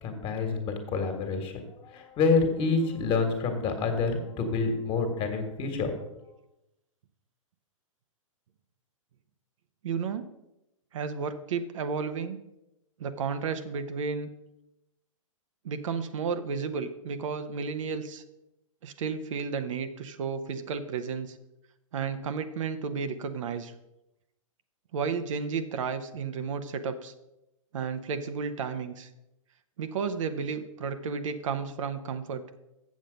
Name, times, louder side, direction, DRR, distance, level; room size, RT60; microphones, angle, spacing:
voice 1, 0.0-5.9, left 4 dB, 30° left, 5 dB, 1.7 m, -28 dB
voice 2, 9.8-10.3 10.9-12.4 13.0-14.3 15.6-18.2 18.8-21.4 21.9-23.7 24.9-27.1 27.7-29.1 29.8-32.4, right 5 dB, 65° right, 9 dB, 0.8 m, -32 dB
7.4 x 7.3 x 5.2 m, 0.90 s
hypercardioid pair, 115°, 17 cm